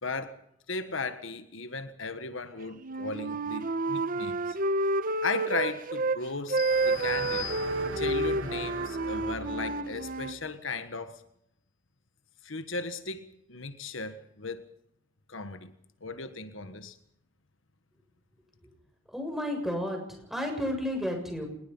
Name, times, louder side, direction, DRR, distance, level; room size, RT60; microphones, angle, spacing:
voice 1, 0.0-0.4 0.7-4.6 5.2-7.5 7.9-11.2 12.4-14.7 15.3-15.7 16.0-17.0, left 4 dB, 80° left, 1.6 m, -36 dB
Wind instrument woodwind instrument, 2.8-6.2 6.5-10.4, right 2 dB, 45° right, 1.2 m, -29 dB
sound 1, 6.6-8.3, left 14 dB, 40° left, 2.7 m, -41 dB
sound 2, 6.6-10.3, right 3 dB, 70° right, 2.5 m, -40 dB
voice 2, 19.1-21.5, left 1 dB, ahead, 7.2 m, -32 dB
26.0 x 21.0 x 5.6 m
head